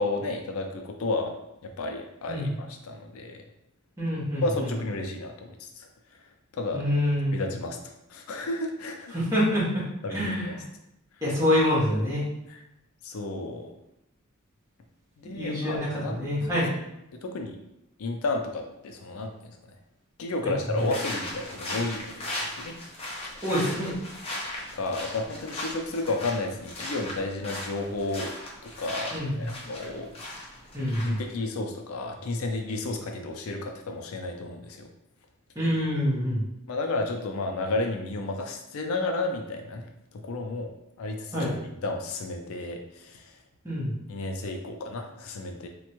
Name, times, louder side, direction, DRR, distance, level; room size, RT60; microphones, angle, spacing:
voice 1, 0.0-1.3 1.6-3.4 4.4-5.9 6.5-6.8 7.3-9.2 10.0-10.5 12.5-12.6 13.0-13.7 15.2-16.2 17.2-17.6 18.0-19.6 20.2-22.8 23.2-23.4 24.7-28.3 28.8-30.1 31.0-34.9 36.7-39.9 40.2-40.7 41.0-41.5 41.8-43.3 44.1-45.7, left 2 dB, 75° left, 4 dB, 0.4 m, -32 dB
voice 2, 4.0-4.7 6.7-7.5 9.1-9.8 10.1-10.6 11.2-12.3 15.2-16.7 20.4-20.9 23.4-23.9 29.1-29.5 30.7-31.2 35.5-36.4 41.3-41.5 43.6-43.9, left 1 dB, 15° right, -8 dB, 1.1 m, -26 dB
sound 1, 20.8-31.3, left 1 dB, 25° left, 0.6 m, -38 dB
3.4 x 2.2 x 2.9 m, 0.85 s
head